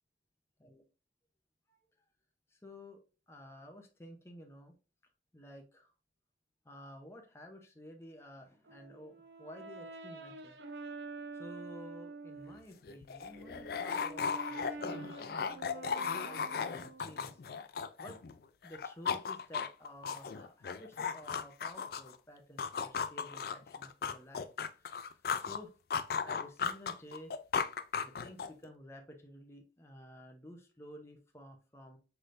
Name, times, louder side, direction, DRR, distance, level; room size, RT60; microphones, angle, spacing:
voice 1, 2.5-3.0 3.3-4.7 5.3-5.9 6.6-10.6 11.3-18.2 18.6-24.5 24.8-25.0 25.3-25.7 26.2-32.0, left 1 dB, 15° left, 2 dB, 0.7 m, -52 dB
Brass instrument, 8.7-12.6 13.2-17.3, right 3 dB, 75° right, 0.6 m, -47 dB
sound 1, 12.5-12.6 12.8-18.4 18.6-22.2 22.6-25.6 25.9-28.7, left 6 dB, 55° left, 0.4 m, -36 dB
6.0 x 3.3 x 2.6 m, 0.33 s
head